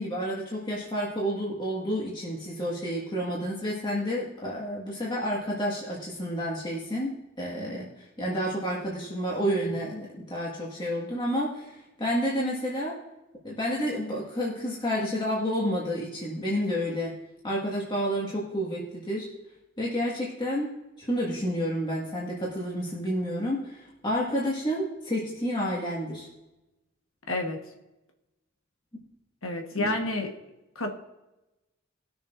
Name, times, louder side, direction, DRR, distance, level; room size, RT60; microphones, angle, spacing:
voice 1, 0.0-13.0 13.4-17.2 17.4-19.3 19.8-26.3 28.9-29.0 29.7-29.9, equal, 25° left, 1.8 m, -30 dB
voice 2, 27.3-27.7 29.4-30.4 30.7-30.9, left 2 dB, 80° left, 1.3 m, -30 dB
19.5 x 6.9 x 2.6 m
head